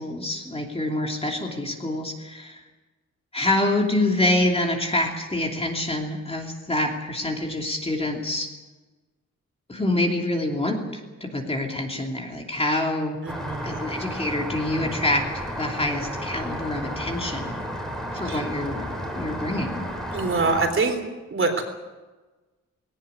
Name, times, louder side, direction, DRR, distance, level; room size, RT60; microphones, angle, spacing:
voice 1, 0.0-2.6 3.3-8.5 9.7-13.2 13.6-17.6 18.1-18.9 19.1-19.9, left 1 dB, 20° left, 1 dB, 2.9 m, -26 dB
voice 2, 13.2-13.8 18.2-18.4 20.1-21.0 21.3-21.6, right 3 dB, 40° right, 5 dB, 3.7 m, -24 dB
Rain, 13.3-20.7, equal, ahead, 3.9 m, -32 dB
19.5 x 18.0 x 9.8 m, 1.2 s
wide cardioid pair, 165°, 31 cm